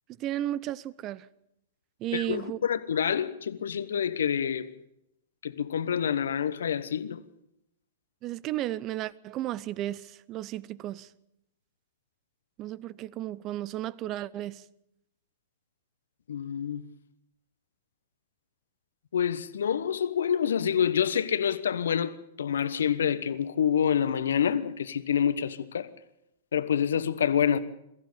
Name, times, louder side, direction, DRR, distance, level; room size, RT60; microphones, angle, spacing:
voice 1, 0.2-1.3 2.0-2.6 8.2-11.1 12.6-14.6, right 13 dB, 35° right, 0.8 m, -34 dB
voice 2, 2.1-4.7 5.4-7.2 16.3-16.9 19.1-25.9 26.5-27.6, left 8 dB, 70° left, 1.2 m, -27 dB
23.0 x 15.0 x 8.6 m
figure-of-eight pair, 105°, 0 cm